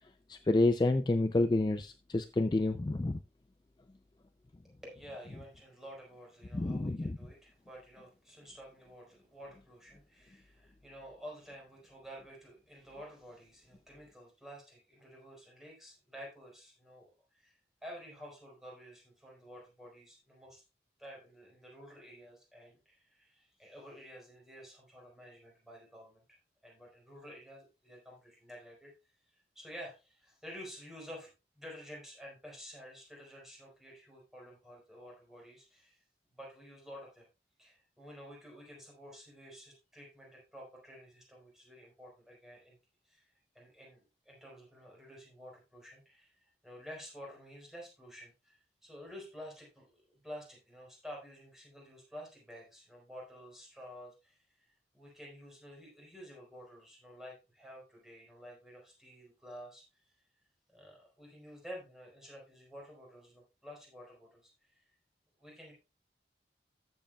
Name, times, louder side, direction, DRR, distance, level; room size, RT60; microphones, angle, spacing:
voice 1, 0.3-3.2 6.5-7.2, left 2 dB, 25° left, 9 dB, 0.4 m, -29 dB
voice 2, 4.8-20.6 21.0-26.4 26.6-31.3 31.6-36.0 36.3-37.2 37.6-42.8 43.0-60.1 60.7-64.9 65.4-65.7, equal, ahead, -3 dB, 4.4 m, -51 dB
14.0 x 7.7 x 2.3 m, 0.29 s
head